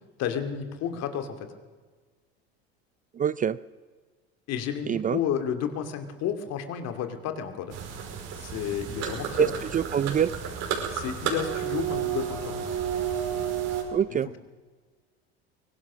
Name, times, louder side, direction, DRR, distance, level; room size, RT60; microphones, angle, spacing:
voice 1, 0.2-1.5 4.5-7.8 8.4-9.5 10.9-12.7 14.1-14.4, left 8 dB, 55° left, 8 dB, 2.5 m, -32 dB
voice 2, 3.2-3.6 4.9-5.2 9.4-10.3 13.9-14.3, right 8 dB, 25° right, 17 dB, 0.5 m, -25 dB
sound 1, 7.7-13.8, right 8 dB, 60° right, 5.2 m, -31 dB
23.0 x 18.0 x 6.2 m, 1.4 s
hypercardioid pair, 85°, 31 cm